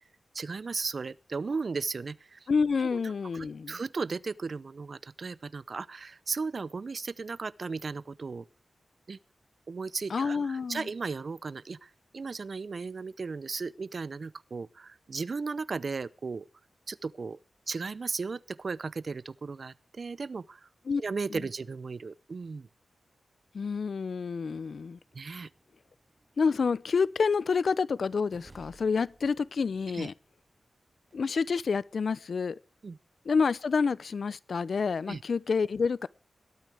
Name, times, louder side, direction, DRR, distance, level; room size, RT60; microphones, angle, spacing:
voice 1, 0.3-2.5 2.8-8.5 9.1-9.2 9.7-16.5 16.9-17.4 17.7-20.7 21.0-22.7 25.1-25.5 29.9-30.1 32.8-33.0 35.1-35.2, right 4 dB, 55° right, 0.6 m, -36 dB
voice 2, 2.5-3.8 10.1-10.9 20.9-21.0 21.3-21.4 23.5-25.0 26.4-30.1 31.1-32.6 33.3-36.1, left 5 dB, 70° left, 0.6 m, -28 dB
sound 1, 24.5-31.2, right 2 dB, 40° right, 5.7 m, -62 dB
19.0 x 12.5 x 3.5 m
wide cardioid pair, 80°, 0 cm